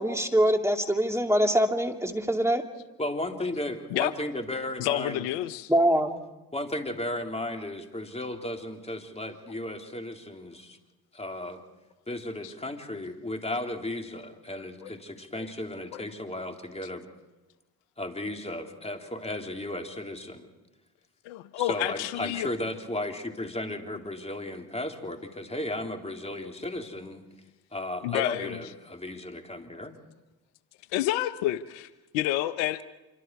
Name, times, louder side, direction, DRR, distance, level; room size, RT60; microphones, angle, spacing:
voice 1, 0.0-2.6 5.7-6.2, right 1 dB, 5° right, 4 dB, 2.6 m, -24 dB
voice 2, 3.0-5.3 6.5-10.8 11.1-11.6 12.1-17.1 18.0-20.5 21.6-27.2 27.7-30.0, left 1 dB, 15° left, 3 dB, 3.6 m, -35 dB
voice 3, 4.8-5.7 12.4-12.5 14.5-14.9 15.4-15.5 15.9-16.1 21.3-22.5 28.0-28.7 30.9-32.8, left 14 dB, 80° left, 14 dB, 0.9 m, -30 dB
26.5 x 24.5 x 4.7 m, 1.1 s
hypercardioid pair, 60°, 42 cm